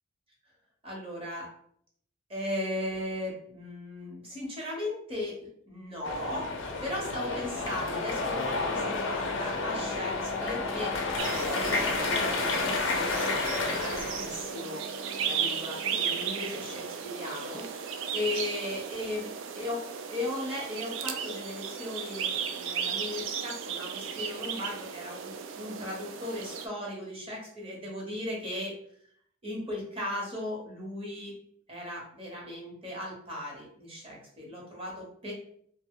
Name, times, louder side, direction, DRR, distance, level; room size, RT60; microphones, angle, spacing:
voice 1, 0.8-1.5 2.3-11.0 11.3-14.8 15.2-17.7 18.1-19.3 19.5-28.7 29.4-31.3 31.7-35.3, left 1 dB, 30° right, -2 dB, 1.0 m, -37 dB
sound 1, 6.0-14.4, left 3 dB, 70° left, 0.5 m, -31 dB
Wind instrument woodwind instrument, 8.7-16.8, left 1 dB, ahead, 0.4 m, -47 dB
sound 2, 11.2-26.7, right 7 dB, 70° right, 0.3 m, -35 dB
2.9 x 2.1 x 3.6 m, 0.66 s
head